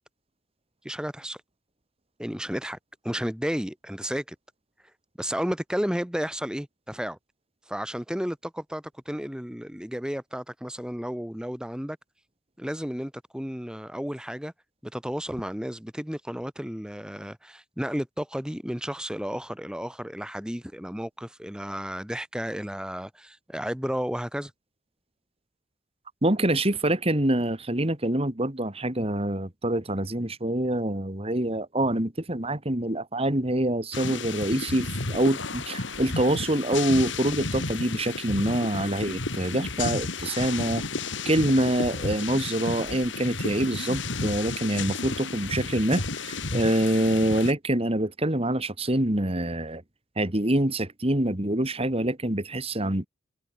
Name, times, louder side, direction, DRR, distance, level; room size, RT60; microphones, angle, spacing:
voice 1, 0.8-1.4 2.2-2.8 3.0-4.3 5.2-7.2 7.7-12.0 12.6-14.5 14.8-24.5, equal, 5° right, 1.3 m, -32 dB
voice 2, 26.2-40.8 41.3-49.8 50.2-53.1, right 1 dB, 30° right, 2.4 m, -25 dB
sound 1, 33.9-47.5, left 3 dB, 65° left, 3.0 m, -32 dB
head